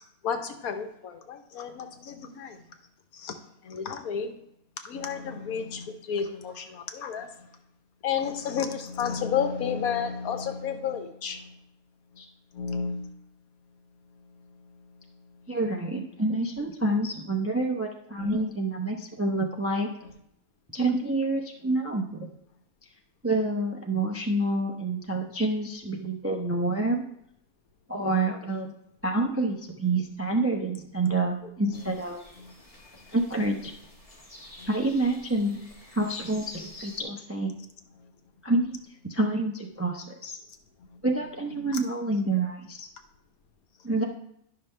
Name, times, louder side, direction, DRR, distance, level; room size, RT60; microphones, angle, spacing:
voice 1, 0.2-2.6 3.1-3.4 3.6-4.4 4.8-7.5 8.0-11.6 12.1-12.2 12.5-13.1 14.1-15.6 18.2-18.3 31.0-31.2 31.7-31.9 32.4-32.5 34.6-34.7 38.0-38.1 40.9-41.0 41.6-41.8, left 7 dB, 90° left, 6 dB, 1.4 m, -32 dB
voice 2, 15.5-19.9 20.7-22.3 23.2-27.0 27.9-28.7 29.0-32.2 33.1-33.7 34.7-35.6 35.9-37.5 38.4-40.4 41.0-42.9 43.8-44.0, right 2 dB, 20° right, 1 dB, 0.4 m, -28 dB
sound 1, 31.7-37.0, left 1 dB, 25° left, 1.5 m, -49 dB
10.5 x 5.8 x 3.2 m, 0.75 s
omnidirectional pair, 1.5 m